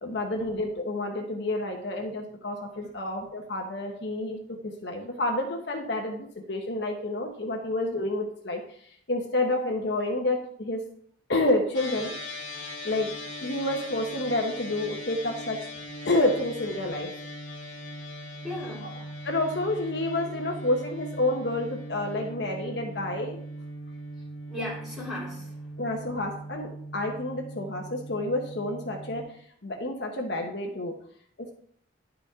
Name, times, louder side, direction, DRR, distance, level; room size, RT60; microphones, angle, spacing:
voice 1, 0.0-8.6 9.1-10.8 11.3-12.1 12.8-13.1 13.4-15.6 16.0-17.1 18.8-18.9 19.2-23.4 25.8-29.2 29.6-30.9 31.4-31.5, left 2 dB, 60° left, 2 dB, 1.0 m, -29 dB
sound 1, 11.7-29.2, equal, 90° left, 1.9 m, -40 dB
voice 2, 18.4-18.9 24.5-25.7, left 1 dB, 5° right, -8 dB, 3.6 m, -36 dB
10.5 x 5.0 x 3.7 m, 0.63 s
head